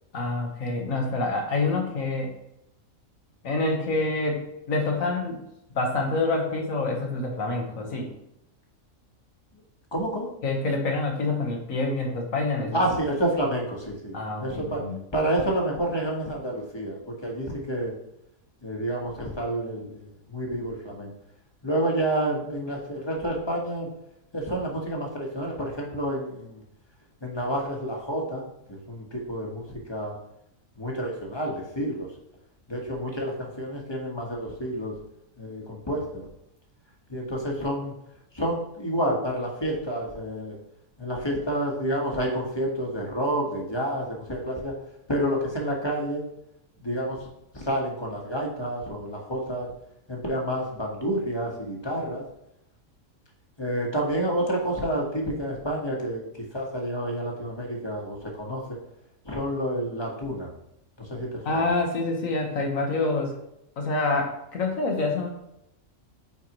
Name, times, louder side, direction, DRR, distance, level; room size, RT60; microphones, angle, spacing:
voice 1, 0.1-2.3 3.4-5.4 5.7-8.1 10.4-12.8 14.1-15.0 61.5-63.3 63.8-65.3, left 3 dB, 70° left, 1 dB, 1.7 m, -27 dB
voice 2, 9.9-10.3 12.7-14.8 15.1-17.9 18.6-21.1 21.6-23.9 24.3-26.6 27.2-30.2 30.7-32.1 32.7-34.9 35.4-36.3 37.1-37.9 38.3-40.6 41.0-44.7 45.1-46.2 46.8-47.2 47.5-49.7 50.1-52.2 53.6-58.8 59.2-60.5 61.0-61.6, right 1 dB, 20° left, -1 dB, 1.5 m, -29 dB
9.1 x 4.6 x 3.1 m, 0.80 s
omnidirectional pair, 1.5 m